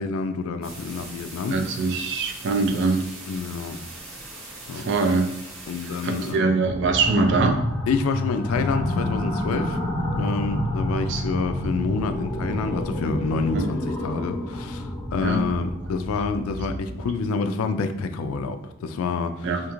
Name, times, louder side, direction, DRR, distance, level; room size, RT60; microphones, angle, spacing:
voice 1, 0.0-1.6 3.3-3.8 4.7-4.9 5.7-6.5 7.9-9.8 10.2-19.5, left 4 dB, 85° left, 12 dB, 0.3 m, -27 dB
sound 1, 0.6-6.3, right 2 dB, 75° right, 0.7 m, -41 dB
voice 2, 1.5-3.1 4.7-5.3 6.0-7.6 11.1-11.2 13.5-13.6 15.2-15.4 19.4-19.6, right 3 dB, 60° right, 5 dB, 0.4 m, -23 dB
sound 2, 6.7-17.2, left 1 dB, 20° left, 0.8 m, -29 dB
2.4 x 2.4 x 2.9 m, 0.87 s
head